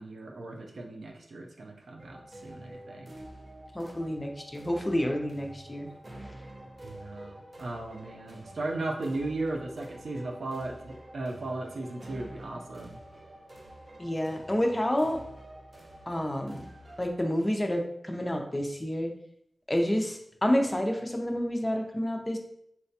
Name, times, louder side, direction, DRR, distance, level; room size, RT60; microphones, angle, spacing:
voice 1, 0.0-3.1 6.8-13.0, right 2 dB, 90° right, 1 dB, 0.5 m, -36 dB
sound 1, 2.0-17.1, right 1 dB, 40° right, 0.5 m, -48 dB
voice 2, 3.7-5.9 14.0-15.2 16.1-16.7 17.0-19.1 19.7-22.4, equal, 20° left, 3 dB, 0.4 m, -29 dB
4.0 x 2.1 x 2.7 m, 0.74 s
wide cardioid pair, 105°, 0 cm